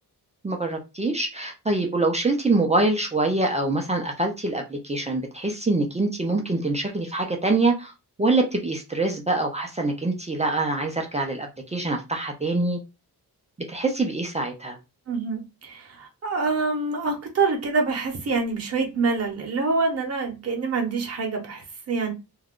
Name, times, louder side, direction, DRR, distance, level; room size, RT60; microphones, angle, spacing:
voice 1, 0.4-7.9 8.2-12.8 13.7-14.8, right 2 dB, 20° right, 0.3 m, -25 dB
voice 2, 15.1-22.1, right 4 dB, 40° right, 0.8 m, -26 dB
2.4 x 2.2 x 3.5 m
wide cardioid pair, 170°, 39 cm